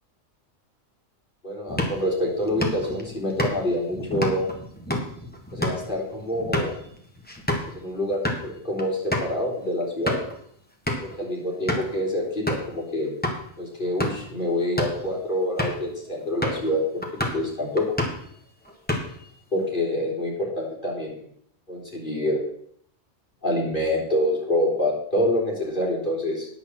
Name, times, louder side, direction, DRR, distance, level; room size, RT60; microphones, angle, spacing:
voice 1, 1.4-4.5 5.5-6.7 7.7-10.2 11.0-13.1 13.6-17.0 17.3-17.9 19.5-21.1 21.7-22.4 23.4-26.5, left 1 dB, 40° left, -3 dB, 3.6 m, -26 dB
Basket Ball loop, 1.7-7.7 8.1-8.4 8.8-8.9 9.1-9.3 9.8-10.3 10.9-11.2 11.7-12.0 12.5-12.7 13.2-13.4 13.9-14.3 14.6-15.0 15.6-15.9 16.4-16.7 17.0-17.5 17.8-18.3 18.6-19.3, left 1 dB, 5° left, 1.5 m, -29 dB
9.8 x 6.5 x 7.3 m, 0.66 s
omnidirectional pair, 1.3 m